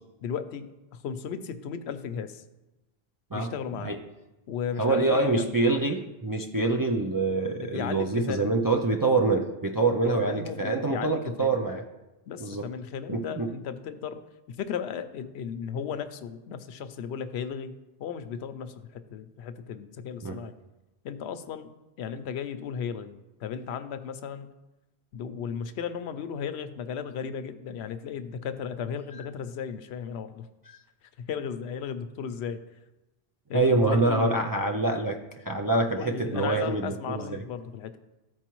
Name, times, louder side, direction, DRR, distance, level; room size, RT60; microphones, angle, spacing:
voice 1, 0.2-2.4 3.3-3.9 4.5-5.6 7.6-8.5 10.0-11.5 12.3-14.2 14.5-17.7 18.0-20.5 21.0-21.7 22.0-24.5 25.1-30.5 31.3-32.6 33.5-34.5 36.0-38.0, left 7 dB, 90° left, 10 dB, 0.8 m, -35 dB
voice 2, 4.8-11.8 12.4-12.7 13.1-13.5 20.2-20.4 33.5-37.4, right 3 dB, 35° right, 2 dB, 0.3 m, -25 dB
13.5 x 4.6 x 3.0 m, 1.0 s
omnidirectional pair, 1.1 m